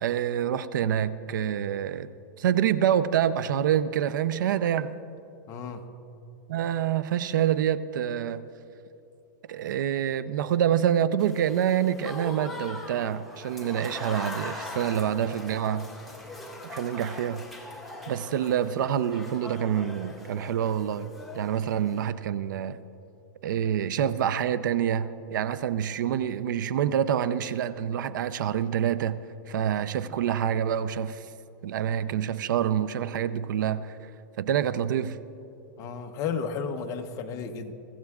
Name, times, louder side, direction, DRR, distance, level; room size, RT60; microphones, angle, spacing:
voice 1, 0.0-2.1 2.4-5.0 6.5-8.4 9.5-15.9 16.7-17.4 18.1-22.8 23.4-29.2 29.5-31.2 31.6-34.0 34.4-35.2, right 9 dB, 75° right, 14 dB, 0.6 m, -27 dB
voice 2, 5.5-5.8 35.8-37.7, left 6 dB, 30° left, 6 dB, 0.9 m, -33 dB
Applause / Crowd, 11.2-22.1, left 2 dB, ahead, 1.8 m, -41 dB
23.5 x 15.0 x 2.4 m, 2.7 s
supercardioid pair, 145°, 10 cm